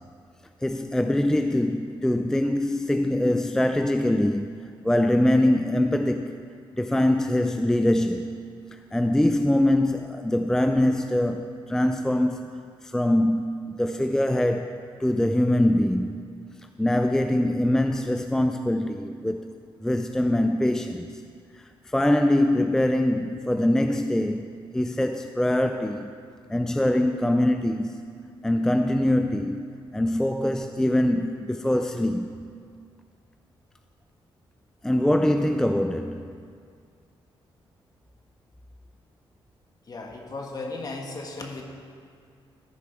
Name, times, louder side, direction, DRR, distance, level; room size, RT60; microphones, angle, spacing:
voice 1, 0.6-6.4 6.7-8.4 8.7-16.2 16.8-21.2 21.5-26.1 26.5-28.0 28.4-29.7 29.9-32.3 34.8-36.4, left 1 dB, 5° left, 0.3 m, -23 dB
voice 2, 39.9-41.6, left 3 dB, 40° left, 1.4 m, -35 dB
13.5 x 4.9 x 5.9 m
cardioid pair, 85°, 10 cm